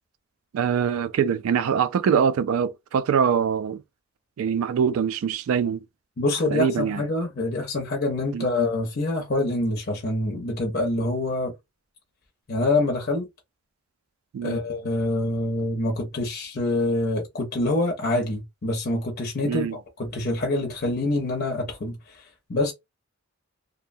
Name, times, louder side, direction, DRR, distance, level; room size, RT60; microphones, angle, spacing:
voice 1, 0.5-3.8 4.4-5.8 6.5-7.0 8.3-8.5 14.3-14.6 19.4-19.7, right 7 dB, 90° right, 0.3 m, -23 dB
voice 2, 6.2-11.5 12.5-13.3 14.4-19.7 20.0-22.7, left 2 dB, 50° left, 0.6 m, -26 dB
2.7 x 2.1 x 2.5 m
head